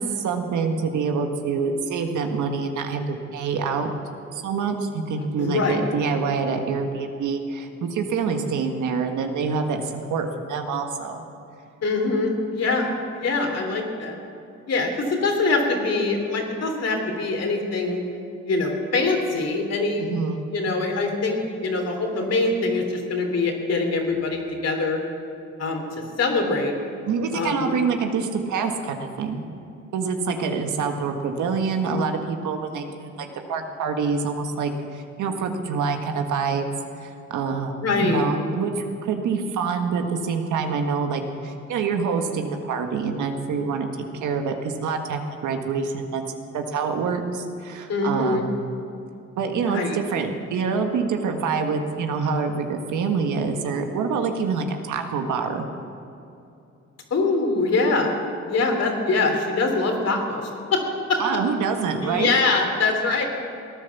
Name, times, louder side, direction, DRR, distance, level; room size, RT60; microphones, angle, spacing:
voice 1, 0.0-3.9 4.3-11.2 20.0-20.4 27.1-29.4 29.9-36.7 37.0-46.2 46.5-48.5 49.4-55.7 61.2-62.4, right 5 dB, 75° right, 4 dB, 1.7 m, -26 dB
voice 2, 5.4-5.9 11.8-14.2 14.7-18.0 18.4-20.1 20.5-25.0 25.6-26.7 27.3-27.7 37.8-38.3 47.9-48.4 49.6-50.0 57.1-58.1 58.5-60.8 61.1-61.2 62.0-63.3, left 3 dB, 55° left, 2 dB, 3.3 m, -23 dB
17.5 x 10.5 x 7.2 m, 2.7 s
cardioid pair, 90°, 30 cm